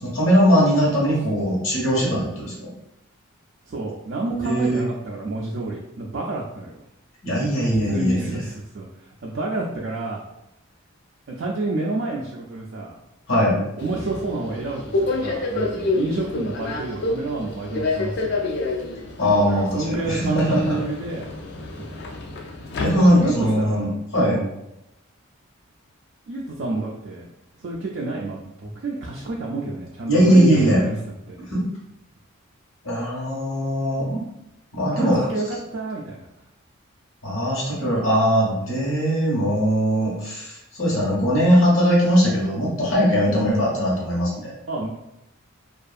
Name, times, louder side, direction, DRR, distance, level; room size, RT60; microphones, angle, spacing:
voice 1, 0.0-2.7 4.4-4.8 7.2-8.4 13.3-13.6 19.2-20.8 22.8-24.4 30.1-30.8 31.5-31.7 32.8-34.2 34.7-35.3 37.2-44.5, equal, 70° left, -5 dB, 1.1 m, -20 dB
voice 2, 3.7-6.8 7.6-8.9 9.2-10.2 11.3-12.9 13.6-18.4 19.3-21.3 21.6-22.0 23.0-24.5 26.3-27.3 27.6-30.9 31.3-31.4 34.9-36.3 43.3-43.6 44.7-44.9, right 2 dB, 55° right, -3 dB, 0.3 m, -29 dB
Subway metro underground, 13.8-23.5, left 2 dB, 50° left, 0.3 m, -29 dB
2.6 x 2.4 x 2.4 m, 0.85 s
head